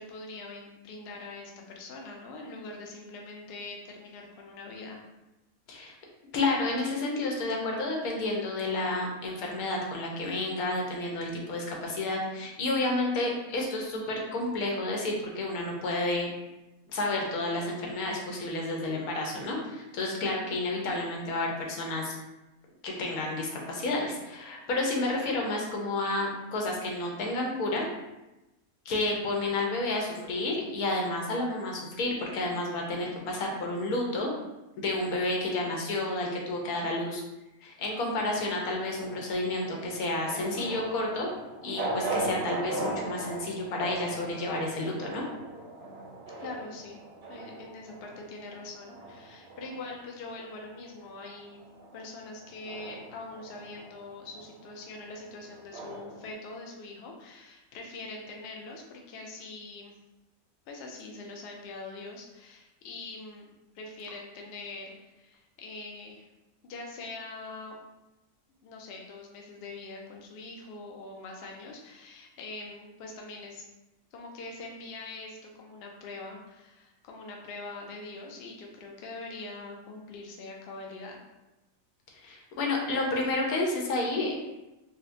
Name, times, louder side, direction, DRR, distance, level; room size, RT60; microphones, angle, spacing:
voice 1, 0.0-5.0 25.1-25.3 46.4-47.0 47.3-51.6 51.9-59.9 60.7-63.4 63.7-66.2 66.6-67.8 68.6-73.6 74.1-81.2, left 3 dB, 65° left, 0 dB, 0.6 m, -43 dB
voice 2, 6.3-16.3 16.9-22.1 22.8-27.9 28.9-34.3 34.8-37.2 37.6-41.3 41.6-45.2 82.2-84.3, left 2 dB, 90° left, 0 dB, 1.2 m, -30 dB
sound 1, 38.1-50.8 51.1-56.3, right 2 dB, 60° right, 0.7 m, -39 dB
4.0 x 2.1 x 2.6 m, 1.0 s
omnidirectional pair, 1.5 m